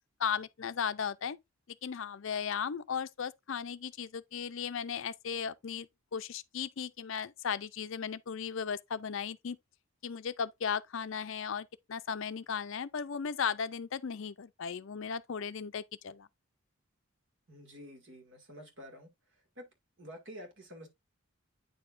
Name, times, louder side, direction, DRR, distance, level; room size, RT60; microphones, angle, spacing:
voice 1, 0.2-1.4 1.8-9.6 10.0-16.3, left 7 dB, 60° left, 0.4 m, -36 dB
voice 2, 17.5-19.1 19.6-19.7 20.0-20.9, equal, 55° right, 2.1 m, -49 dB
9.1 x 4.9 x 2.5 m
head